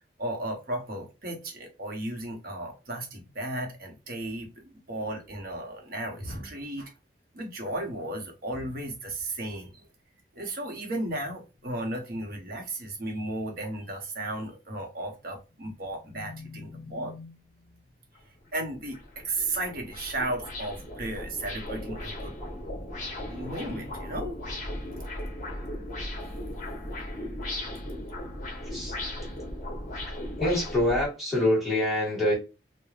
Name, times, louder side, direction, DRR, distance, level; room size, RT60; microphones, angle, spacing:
voice 1, 0.2-6.9 7.3-9.9 10.3-17.8 18.5-22.3 23.3-24.7 29.3-29.4, right 1 dB, 55° right, 0.9 m, -35 dB
sound 1, 18.2-18.3 18.7-31.1, left 1 dB, 45° left, 1.0 m, -37 dB
voice 2, 28.6-29.0 30.4-32.3, left 1 dB, ahead, 1.4 m, -25 dB
3.1 x 2.1 x 2.4 m
head